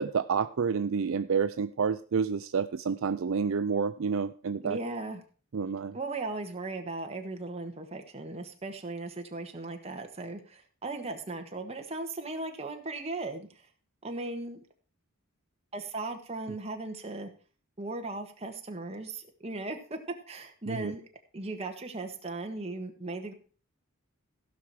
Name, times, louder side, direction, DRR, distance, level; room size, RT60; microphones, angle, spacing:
voice 1, 0.0-4.8 5.5-6.0 20.7-20.9, right 6 dB, 65° right, 11 dB, 0.4 m, -29 dB
voice 2, 4.6-5.2 5.9-13.7 14.0-14.6 15.7-17.3 17.8-20.0 20.3-21.0 21.3-23.3, right 2 dB, 30° right, 4 dB, 1.5 m, -37 dB
15.5 x 6.0 x 4.8 m, 0.39 s
head